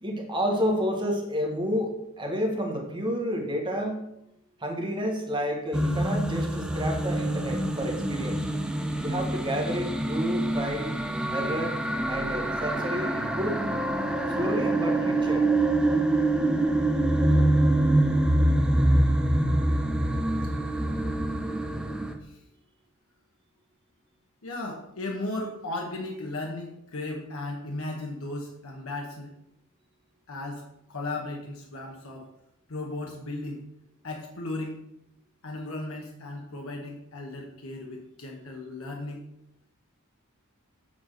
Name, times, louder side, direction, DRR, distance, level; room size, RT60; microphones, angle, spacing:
voice 1, 0.0-4.0 4.6-8.4 9.0-10.9 11.3-11.8 12.1-13.6 14.3-15.5, equal, 20° right, 2 dB, 1.3 m, -30 dB
sound 1, 5.7-22.1, right 1 dB, 5° right, 0.6 m, -25 dB
voice 2, 24.4-29.3 30.3-32.3 32.7-33.6 34.0-34.8 35.4-39.2, left 2 dB, 80° left, 1 dB, 1.1 m, -36 dB
7.6 x 4.3 x 6.3 m, 0.82 s
head